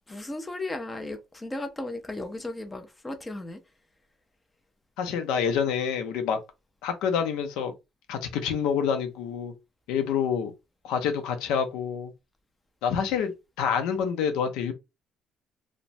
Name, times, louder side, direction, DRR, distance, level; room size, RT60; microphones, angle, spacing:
voice 1, 0.1-3.6, left 2 dB, 10° left, 0.5 m, -35 dB
voice 2, 5.0-6.4 6.8-7.7 8.1-9.5 9.9-10.5 10.8-12.1 12.8-14.7, left 7 dB, 90° left, 0.6 m, -27 dB
3.0 x 2.1 x 2.6 m
cardioid pair, 155°, 0 cm